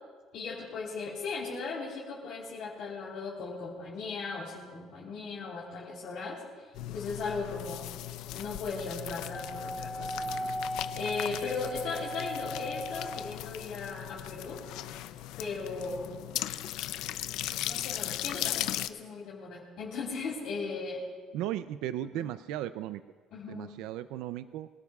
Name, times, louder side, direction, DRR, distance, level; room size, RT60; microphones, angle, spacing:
voice 1, 0.3-6.4 6.9-7.9 8.3-10.5 10.9-14.6 15.4-16.1 17.6-21.0 22.1-22.2 23.3-23.7, left 4 dB, 50° left, -7 dB, 3.2 m, -37 dB
sound 1, 6.7-18.9, left 14 dB, 70° left, 0.5 m, -38 dB
Wind instrument woodwind instrument, 9.3-13.5, equal, 15° right, 2.0 m, -38 dB
voice 2, 21.3-23.0 23.5-24.7, right 12 dB, 80° right, 13 dB, 0.4 m, -36 dB
24.5 x 17.5 x 2.4 m, 1.5 s
cardioid pair, 175°, 0 cm